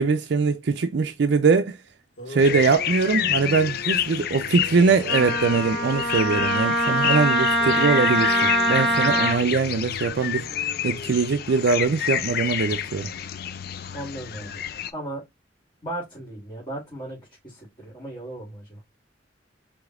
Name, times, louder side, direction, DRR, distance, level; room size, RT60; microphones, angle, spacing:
voice 1, 0.0-1.8 2.3-10.5 10.8-13.1, right 4 dB, 65° right, 0.4 m, -22 dB
sound 1, 1.9-2.0 2.2-6.3 7.6-11.6, left 1 dB, 90° left, 2.0 m, -40 dB
sound 2, 2.4-14.9, left 10 dB, 55° left, 0.4 m, -29 dB
Wind instrument woodwind instrument, 5.1-9.4, right 1 dB, ahead, 1.2 m, -23 dB
voice 2, 13.9-14.6 14.9-15.2 15.8-17.2 17.4-18.8, right 1 dB, 25° left, 2.6 m, -36 dB
5.0 x 3.5 x 2.4 m
head